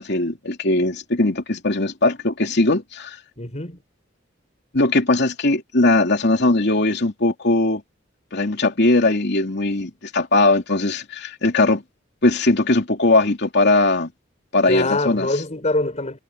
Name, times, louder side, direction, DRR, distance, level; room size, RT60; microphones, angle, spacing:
voice 1, 0.0-3.2 4.7-7.8 8.3-11.8 12.2-14.1 14.5-15.3, left 2 dB, 60° left, 3.1 m, -19 dB
voice 2, 3.4-3.8 14.7-16.2, left 2 dB, 35° left, 4.6 m, -24 dB
head